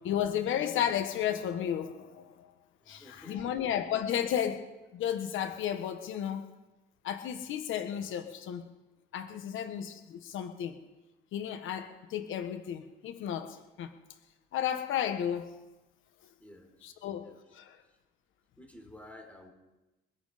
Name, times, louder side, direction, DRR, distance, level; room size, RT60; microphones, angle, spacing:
voice 1, 0.0-2.5 2.9-4.6 4.9-6.5 7.0-8.6 9.1-10.8 11.3-13.9 14.5-15.5 16.8-17.8, left 9 dB, 80° left, 8 dB, 1.3 m, -33 dB
voice 2, 2.8-3.6 16.4-16.9 17.2-17.4 18.6-19.5, left 1 dB, 5° left, 2 dB, 4.4 m, -52 dB
23.0 x 11.0 x 5.0 m, 1.1 s
cardioid pair, 90°, 20 cm